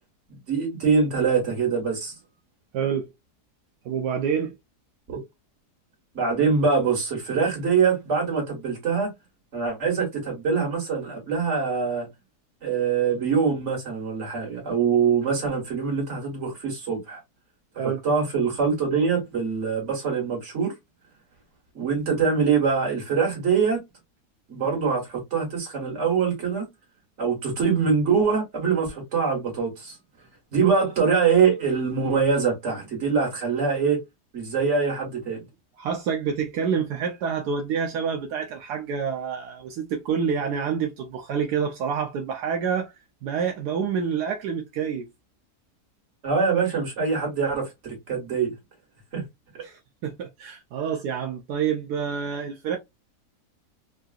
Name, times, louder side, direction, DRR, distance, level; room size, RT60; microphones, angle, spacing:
voice 1, 0.5-2.1 5.1-5.2 6.1-9.1 9.5-12.1 12.6-17.2 17.7-20.7 21.7-23.8 24.5-26.7 27.2-30.0 30.5-34.0 34.3-35.4 46.2-48.5 49.1-49.2, right 5 dB, 45° right, 1.8 m, -24 dB
voice 2, 2.7-3.1 3.8-4.5 17.8-18.0 35.8-42.9 43.2-45.1 49.6-52.8, right 7 dB, 80° right, 1.2 m, -27 dB
3.7 x 2.3 x 2.4 m
omnidirectional pair, 1.7 m